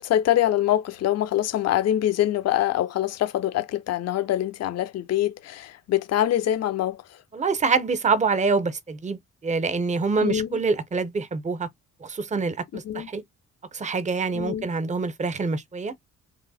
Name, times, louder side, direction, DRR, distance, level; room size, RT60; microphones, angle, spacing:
voice 1, 0.0-7.0 10.2-10.6 12.9-13.1 14.3-14.7, left 12 dB, 55° left, 0.6 m, -24 dB
voice 2, 7.3-11.7 12.0-13.2 13.7-15.9, right 4 dB, 25° right, 0.7 m, -25 dB
3.0 x 2.0 x 4.0 m
cardioid pair, 90°, 30 cm